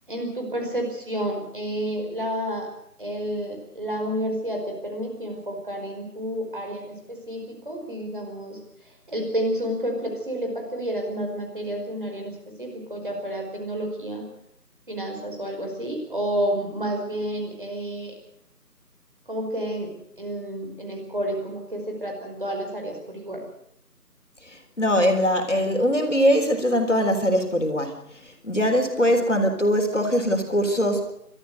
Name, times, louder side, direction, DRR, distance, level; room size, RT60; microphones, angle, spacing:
voice 1, 0.1-2.7 3.0-8.6 9.1-14.2 14.9-18.2 19.3-19.9 20.2-23.4 28.6-28.7, right 1 dB, 30° right, 2 dB, 5.2 m, -30 dB
voice 2, 24.8-28.0 28.4-31.1, equal, 45° left, 5 dB, 4.0 m, -21 dB
28.0 x 14.0 x 8.1 m, 0.72 s
figure-of-eight pair, 170°, 48 cm